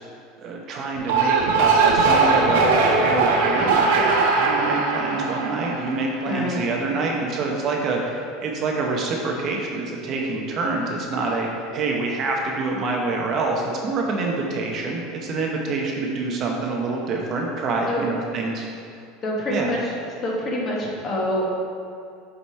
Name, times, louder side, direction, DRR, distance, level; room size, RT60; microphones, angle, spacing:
voice 1, 0.4-18.7 19.5-19.7, right 3 dB, 30° right, 0 dB, 0.7 m, -26 dB
sound 1, 1.0-6.3, right 4 dB, 85° right, 1.1 m, -20 dB
voice 2, 6.3-7.0 17.9-18.1 19.2-19.9 20.2-21.4, left 1 dB, 25° left, -3 dB, 1.1 m, -26 dB
7.2 x 5.0 x 4.4 m, 2.4 s
supercardioid pair, 170°, 0 cm